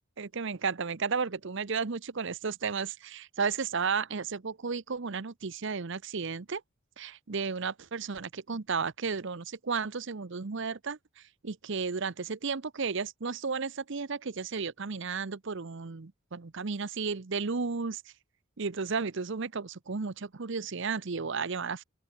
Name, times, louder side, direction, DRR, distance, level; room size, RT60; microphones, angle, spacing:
voice 1, 0.2-6.6 7.0-11.0 11.4-18.0 18.6-21.8, right 5 dB, 60° right, 0.8 m, -33 dB
open air
head